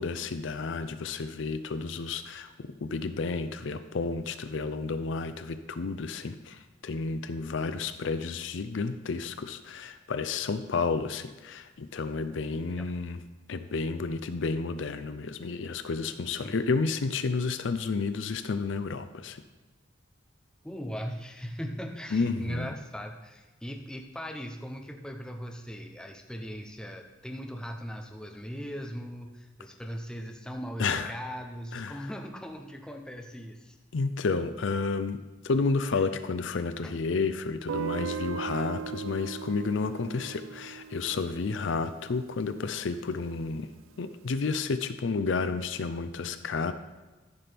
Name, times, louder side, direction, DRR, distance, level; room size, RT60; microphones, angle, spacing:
voice 1, 0.0-13.2 13.5-19.4 22.1-22.7 30.8-31.1 31.7-32.1 33.9-43.7 44.0-46.7, left 4 dB, 70° left, 11 dB, 0.5 m, -31 dB
voice 2, 20.6-33.8 35.9-36.0 36.8-36.9, equal, 5° left, 3 dB, 0.6 m, -39 dB
Guitar, 37.7-42.6, right 7 dB, 90° right, 0.4 m, -38 dB
13.5 x 5.9 x 3.4 m, 1.2 s
head